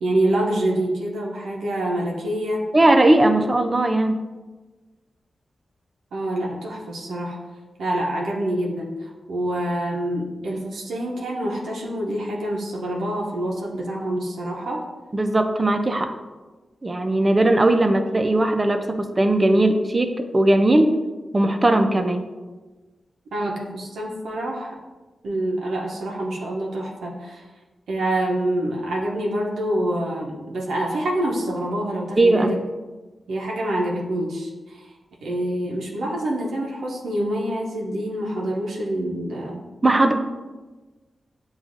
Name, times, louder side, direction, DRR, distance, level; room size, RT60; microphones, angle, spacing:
voice 1, 0.0-2.7 6.1-7.4 7.8-14.8 23.3-24.8 25.2-27.4 27.9-32.6 33.3-34.9 35.2-39.6, right 1 dB, 90° right, -3 dB, 0.6 m, -26 dB
voice 2, 2.7-4.2 15.1-16.1 16.8-21.0 21.3-22.3 32.2-32.5 39.8-40.1, right 1 dB, 35° right, 7 dB, 0.5 m, -18 dB
7.0 x 2.4 x 2.5 m, 1.2 s
cardioid pair, 45°, 0 cm